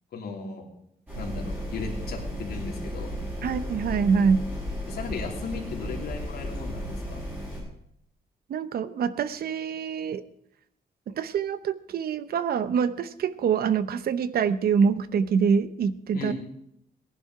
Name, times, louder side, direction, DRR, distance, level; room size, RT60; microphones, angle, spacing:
voice 1, 0.1-0.6 1.2-3.1 4.9-7.2 16.1-16.3, left 4 dB, 70° left, 1 dB, 3.1 m, -36 dB
sound 1, 1.1-7.6, equal, 10° right, 7.2 m, -34 dB
voice 2, 3.4-4.4 8.5-10.2 11.2-16.3, right 6 dB, 65° right, 13 dB, 0.8 m, -25 dB
18.5 x 11.0 x 4.9 m, 0.74 s
wide cardioid pair, 175°, 17 cm